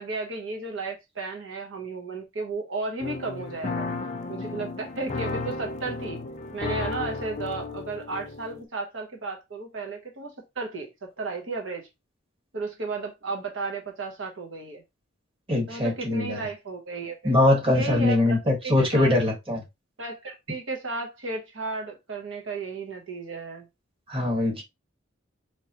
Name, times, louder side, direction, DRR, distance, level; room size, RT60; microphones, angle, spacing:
voice 1, 0.0-3.9 4.3-6.2 6.5-11.9 12.5-14.8 15.7-17.4 17.7-19.2 20.0-23.7, right 3 dB, 75° right, 0.9 m, -34 dB
sound 1, 3.0-8.6, left 3 dB, 40° left, 0.6 m, -34 dB
voice 2, 15.5-16.4 17.2-19.6 24.1-24.6, left 2 dB, 30° right, 1.6 m, -22 dB
4.5 x 3.0 x 3.0 m
head